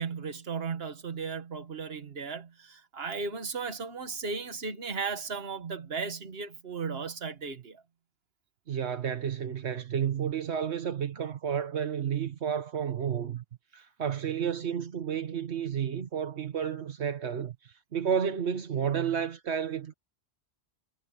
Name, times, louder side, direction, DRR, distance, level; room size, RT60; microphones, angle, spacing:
voice 1, 0.0-7.8, right 5 dB, 65° right, 1.7 m, -36 dB
voice 2, 8.7-13.4 13.7-19.9, right 8 dB, 80° right, 1.4 m, -31 dB
omnidirectional pair, 1.1 m